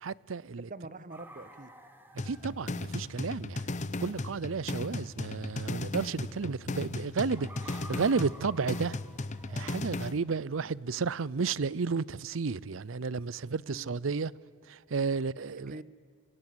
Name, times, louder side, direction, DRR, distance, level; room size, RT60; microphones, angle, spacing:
voice 1, 0.0-0.7 2.2-3.7 4.0-9.0 9.5-14.3 14.7-15.8, right 5 dB, 80° right, 0.6 m, -32 dB
voice 2, 0.7-1.7 3.4-3.5 13.6-14.0 15.0-15.3 15.7-15.8, right 2 dB, 40° right, 1.3 m, -45 dB
sound 1, 1.1-9.9, right 1 dB, 10° right, 2.2 m, -54 dB
sound 2, 2.2-10.2, left 2 dB, 35° left, 0.8 m, -36 dB
30.0 x 24.5 x 7.9 m
head